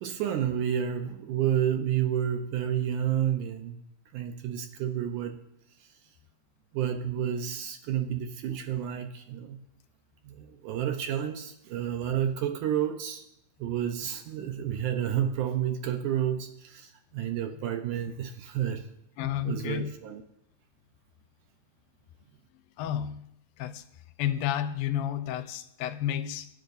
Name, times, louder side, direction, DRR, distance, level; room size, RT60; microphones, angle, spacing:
voice 1, 0.0-3.8 4.1-5.4 6.7-9.6 10.2-13.2 13.6-18.9 19.4-20.2, right 10 dB, 75° right, 2.0 m, -30 dB
voice 2, 19.2-19.9 22.8-23.2 23.6-23.8 24.2-26.5, left 11 dB, 90° left, 2.4 m, -31 dB
23.5 x 10.0 x 2.6 m
omnidirectional pair, 4.1 m